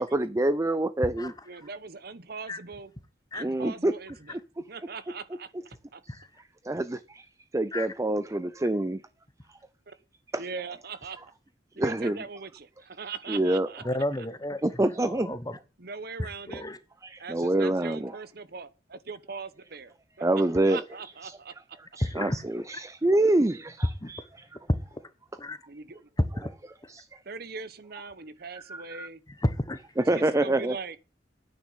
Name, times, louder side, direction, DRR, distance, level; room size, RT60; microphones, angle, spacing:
voice 1, 0.0-1.3 3.4-3.9 6.6-7.3 7.5-9.0 9.5-9.6 10.3-10.4 11.8-12.2 13.3-13.7 14.6-15.4 17.0-18.1 20.2-20.8 21.2-21.4 22.0-24.4 26.9-27.1 28.7-29.1 30.0-30.7, right 1 dB, 15° right, 0.5 m, -26 dB
voice 2, 1.4-2.9 3.3-4.4 4.7-5.5 5.9-6.0 9.9-10.0 10.4-11.2 11.8-13.8 14.2-14.3 15.8-16.6 17.2-20.3 20.7-21.5 25.7-26.0 27.2-29.2 30.1-31.0, right 5 dB, 60° right, 1.0 m, -40 dB
voice 3, 13.8-14.6 15.0-15.6 16.2-16.8 22.0-22.4 22.7-22.8 24.0-24.1 25.4-25.6 26.4-26.5 29.4-29.8, left 1 dB, 20° left, 1.1 m, -31 dB
9.5 x 9.5 x 5.6 m
head